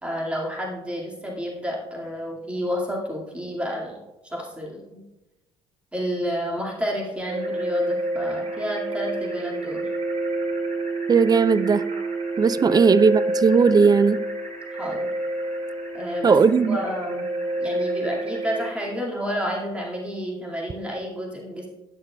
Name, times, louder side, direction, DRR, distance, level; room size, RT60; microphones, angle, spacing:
voice 1, 0.0-4.0 4.2-5.0 5.9-9.8 12.7-12.9 14.7-15.1 15.9-16.4 16.7-17.3 17.6-21.7, equal, 5° right, 2.3 m, -30 dB
sound 1, 7.3-18.7, right 2 dB, 45° right, 2.3 m, -28 dB
voice 2, 11.1-11.9 12.4-14.3 16.2-16.8, right 5 dB, 25° right, 0.4 m, -17 dB
18.0 x 6.4 x 2.4 m
hypercardioid pair, 55°, 17 cm